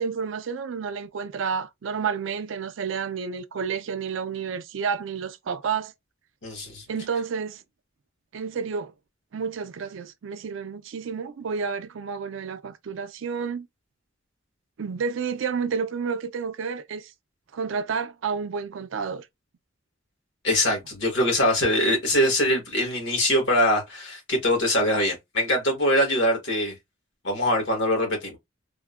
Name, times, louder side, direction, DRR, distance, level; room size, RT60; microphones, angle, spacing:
voice 1, 0.0-5.9 6.9-7.6 8.3-8.9 9.3-13.7 14.8-17.1 17.5-19.3, right 6 dB, 75° right, 0.4 m, -30 dB
voice 2, 6.4-6.8 20.4-26.7 27.2-28.4, left 1 dB, 70° left, 1.3 m, -23 dB
3.5 x 2.1 x 2.3 m
head